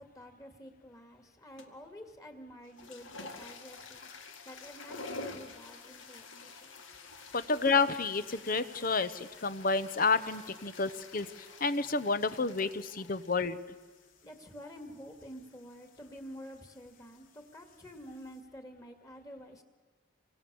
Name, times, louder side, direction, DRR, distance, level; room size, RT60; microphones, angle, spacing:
voice 1, 0.0-4.1 4.4-6.8 14.2-19.6, equal, 15° left, 5 dB, 2.4 m, -49 dB
sound 1, 1.6-1.9 2.6-18.4, left 3 dB, 80° left, 2.2 m, -50 dB
voice 2, 7.3-13.6, left 4 dB, 45° left, 13 dB, 1.0 m, -30 dB
27.0 x 25.0 x 7.1 m, 1.4 s
head